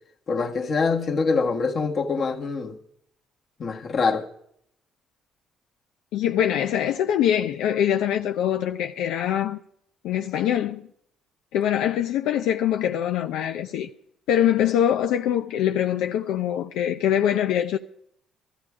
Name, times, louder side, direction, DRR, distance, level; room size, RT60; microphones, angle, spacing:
voice 1, 0.3-2.8 3.6-4.2, left 4 dB, 45° left, 1.6 m, -24 dB
voice 2, 6.1-9.6 10.0-10.9 11.5-13.9 14.3-17.8, left 10 dB, 80° left, 0.6 m, -23 dB
14.5 x 14.0 x 4.9 m
cardioid pair, 115°, 0 cm